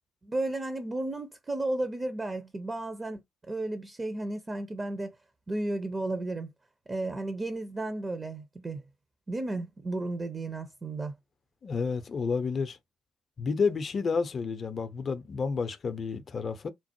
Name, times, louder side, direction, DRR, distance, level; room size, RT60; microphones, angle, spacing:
voice 1, 0.2-3.2 3.5-5.2 5.5-6.5 6.9-8.8 9.3-11.1, right 2 dB, 25° right, 0.6 m, -33 dB
voice 2, 11.6-12.8 13.4-16.7, left 5 dB, 40° left, 0.5 m, -30 dB
4.4 x 2.0 x 2.9 m
figure-of-eight pair, 45°, 0 cm